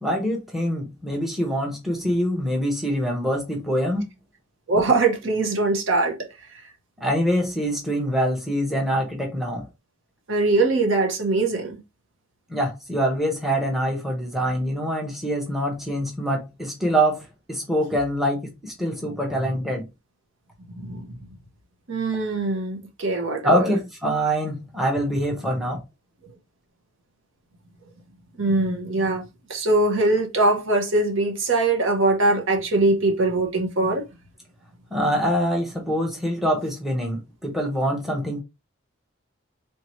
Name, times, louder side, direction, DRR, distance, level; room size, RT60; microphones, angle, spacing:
voice 1, 0.0-4.1 7.0-9.7 12.5-19.8 23.4-25.8 34.9-38.4, equal, ahead, 0.9 m, -24 dB
voice 2, 4.7-6.6 10.3-11.8 20.7-21.1 21.9-23.7 28.4-29.2 29.5-34.0, right 2 dB, 70° right, 1.0 m, -22 dB
3.4 x 2.8 x 3.0 m
head